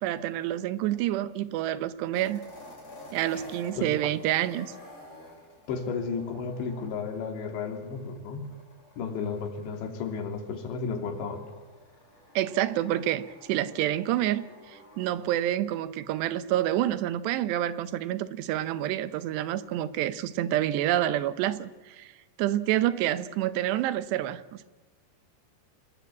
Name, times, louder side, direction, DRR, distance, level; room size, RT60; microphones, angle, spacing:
voice 1, 0.0-2.4 3.1-4.7 12.4-22.1 22.4-24.6, right 13 dB, 80° right, 14 dB, 3.0 m, -28 dB
sound 1, 2.1-15.4, left 2 dB, 35° left, 7.8 m, -51 dB
voice 2, 5.7-8.5 9.0-11.4, left 5 dB, 90° left, 5 dB, 5.0 m, -33 dB
27.0 x 20.5 x 8.4 m, 1.2 s
omnidirectional pair, 5.0 m